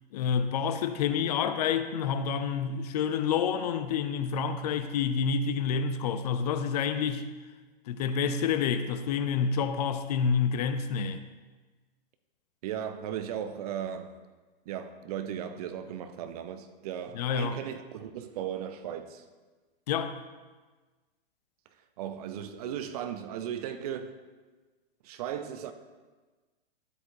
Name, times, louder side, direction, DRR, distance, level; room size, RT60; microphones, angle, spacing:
voice 1, 0.1-7.3 7.9-11.2 17.1-17.6 19.9-20.2, left 6 dB, 40° left, 0.6 m, -28 dB
voice 2, 12.6-14.1 14.7-19.2 22.0-24.2 25.0-25.7, right 9 dB, 40° right, 0.7 m, -36 dB
12.5 x 8.1 x 2.8 m
figure-of-eight pair, 110°, 30 cm